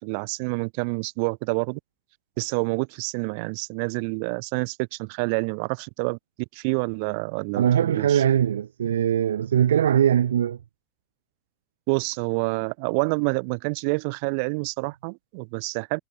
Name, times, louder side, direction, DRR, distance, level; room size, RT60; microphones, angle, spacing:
voice 1, 0.0-1.8 2.4-6.2 6.5-8.2 11.9-16.0, right 35 dB, 65° right, 2.8 m, -28 dB
voice 2, 7.6-10.6, right 10 dB, 85° right, 0.6 m, -21 dB
hypercardioid pair, 75°, 0 cm